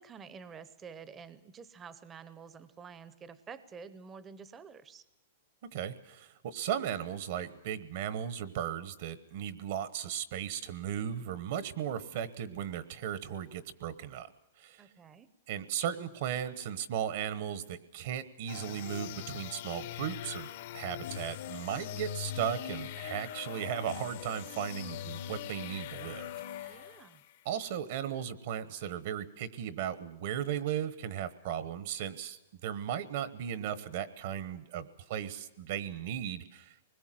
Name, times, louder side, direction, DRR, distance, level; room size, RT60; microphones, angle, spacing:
voice 1, 0.0-5.0 14.8-15.3 26.7-27.2, right 6 dB, 15° right, 15 dB, 0.8 m, -49 dB
voice 2, 5.7-14.3 14.6-14.9 15.5-26.8 27.4-36.7, right 9 dB, 50° right, 14 dB, 1.1 m, -36 dB
sound 1, 18.5-27.4, left 11 dB, 50° left, 0.8 m, -41 dB
23.5 x 21.0 x 7.7 m, 0.94 s
hypercardioid pair, 165°, 0 cm